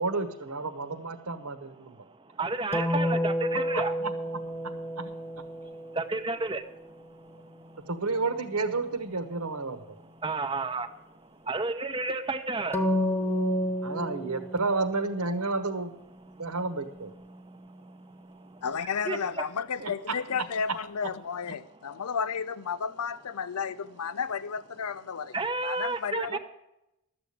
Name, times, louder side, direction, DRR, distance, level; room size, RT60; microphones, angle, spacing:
voice 1, 0.0-2.0 3.7-4.1 4.6-5.1 7.9-10.0 13.8-15.9 16.4-17.1 19.8-20.2 26.3-26.4, right 3 dB, 85° right, 1.3 m, -31 dB
voice 2, 1.8-3.9 5.5-7.9 10.2-13.9 17.3-18.6 19.0-19.4 21.6-22.0 25.3-26.4, right 3 dB, 20° right, 0.7 m, -34 dB
sound 1, 2.7-6.5 12.7-15.5 16.0-18.3, equal, 10° left, 0.9 m, -31 dB
voice 3, 18.6-25.4 25.6-26.4, left 6 dB, 85° left, 0.6 m, -32 dB
13.0 x 7.0 x 8.4 m
head